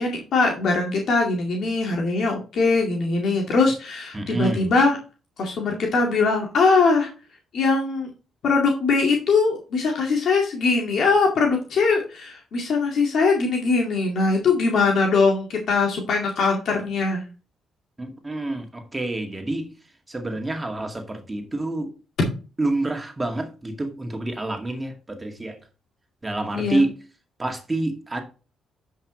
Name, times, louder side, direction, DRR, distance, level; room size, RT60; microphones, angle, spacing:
voice 1, 0.0-5.0 5.4-7.1 7.5-8.1 8.4-17.2 26.5-26.8, left 4 dB, 65° left, 1 dB, 2.1 m, -21 dB
voice 2, 4.1-4.7 18.0-19.7 20.1-21.9 22.6-25.6 26.2-27.0 27.4-28.2, right 2 dB, 20° right, 4 dB, 2.1 m, -27 dB
10.0 x 5.7 x 3.2 m, 0.34 s
cardioid pair, 90°, 0 cm